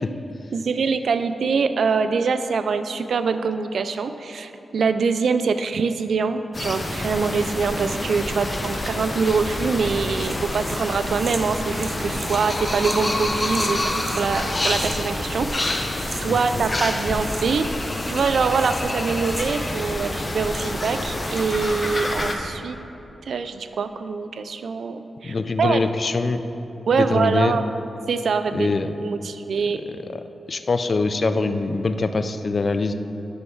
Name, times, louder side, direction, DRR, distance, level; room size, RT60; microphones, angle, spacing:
voice 1, 0.5-15.8 16.1-17.7 18.1-22.8 23.3-25.8 26.9-27.6 28.1-28.7 29.0-29.8, right 5 dB, 80° right, 10 dB, 0.3 m, -24 dB
sound 1, 6.5-22.3, left 1 dB, 35° left, 0.7 m, -27 dB
sound 2, 10.2-14.3 14.7-15.2 15.4-16.8 17.1-17.7 17.9-20.9 21.1-21.7, right 2 dB, 40° right, 0.7 m, -39 dB
voice 2, 16.3-16.6 25.2-26.4 26.9-27.6 28.5-29.0 30.5-32.9, left 3 dB, 50° left, 9 dB, 0.4 m, -23 dB
6.4 x 5.4 x 4.6 m, 2.9 s
cardioid pair, 65°, 0 cm